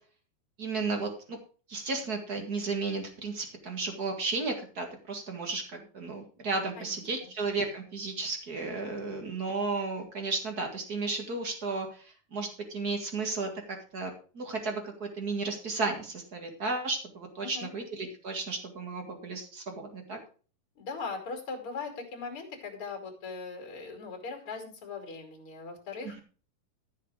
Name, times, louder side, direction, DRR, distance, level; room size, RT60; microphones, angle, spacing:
voice 1, 0.6-1.4 1.7-20.2, right 3 dB, 35° right, 3 dB, 1.9 m, -34 dB
voice 2, 20.8-26.2, left 4 dB, 40° left, 3 dB, 3.2 m, -39 dB
13.0 x 6.6 x 4.9 m, 0.38 s
omnidirectional pair, 3.8 m